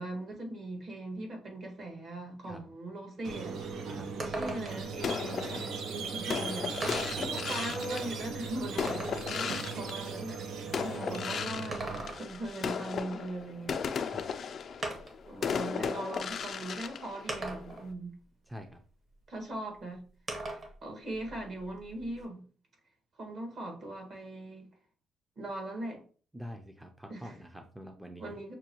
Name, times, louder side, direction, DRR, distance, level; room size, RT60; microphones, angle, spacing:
voice 1, 0.0-3.9 4.2-5.5 5.9-6.7 7.2-10.4 10.8-13.8 14.3-14.4 15.3-18.2 19.3-20.0 20.5-22.4 23.2-24.7 25.4-26.0 27.1-27.3 28.2-28.5, right 1 dB, 55° right, 1.6 m, -40 dB
Squeak, 3.2-12.0, right 5 dB, 80° right, 0.6 m, -38 dB
sound 1, 3.3-3.4 3.7-3.8 4.2-4.9 6.0-6.1 6.8-7.3 7.9-9.3 11.5-12.5 14.0-14.1 14.8-15.3 16.3-16.4 17.3-17.9 20.3-20.8 21.1-22.2, right 2 dB, 40° right, 1.1 m, -39 dB
sound 2, 5.0-10.4 10.7-17.9, left 6 dB, 55° left, 0.4 m, -36 dB
voice 2, 6.8-7.5 14.1-14.2 18.5-18.8 26.3-28.4, equal, 5° right, 0.5 m, -46 dB
6.1 x 2.2 x 2.9 m
cardioid pair, 90°, 0 cm